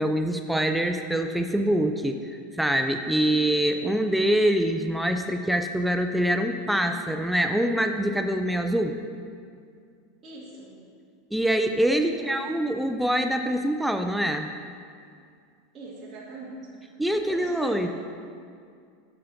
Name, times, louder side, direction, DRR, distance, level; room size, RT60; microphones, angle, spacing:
voice 1, 0.0-9.0 11.3-14.5 17.0-17.9, right 1 dB, ahead, 6 dB, 0.3 m, -25 dB
voice 2, 10.2-10.7 12.1-12.4 15.7-17.9, right 3 dB, 25° right, -7 dB, 1.7 m, -42 dB
7.0 x 6.8 x 5.2 m, 2.3 s
supercardioid pair, 160°, 0 cm